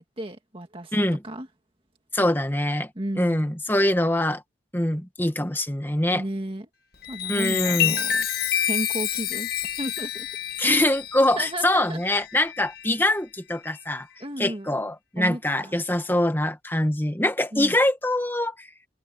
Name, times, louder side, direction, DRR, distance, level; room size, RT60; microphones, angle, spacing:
voice 1, 0.0-1.0 1.2-1.5 3.0-3.5 6.1-6.7 7.1-8.3 8.7-9.5 9.8-10.3 11.4-12.0 14.2-14.7 15.2-15.7 17.5-17.8, right 1 dB, 30° right, 2.1 m, -33 dB
voice 2, 0.9-1.2 2.1-2.9 3.2-4.4 4.7-6.2 7.3-8.0 10.6-14.1 14.4-18.7, left 1 dB, 10° left, 1.8 m, -24 dB
Chime, 6.9-12.9 13.5-13.8, left 10 dB, 55° left, 2.1 m, -28 dB
head